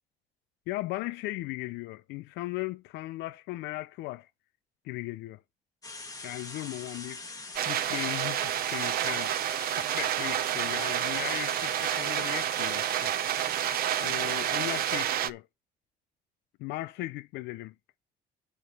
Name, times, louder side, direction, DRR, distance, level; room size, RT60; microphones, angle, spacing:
voice 1, 0.7-4.3 4.8-5.4 6.2-7.2 7.7-9.3 9.7-13.1 14.0-15.5 16.6-17.7, left 18 dB, 85° left, 0.4 m, -37 dB
sound 1, 5.8-15.0, left 3 dB, 20° left, 1.9 m, -42 dB
sound 2, 7.5-15.3, right 12 dB, 60° right, 0.6 m, -29 dB
8.3 x 4.6 x 6.7 m
cardioid pair, 110°, 17 cm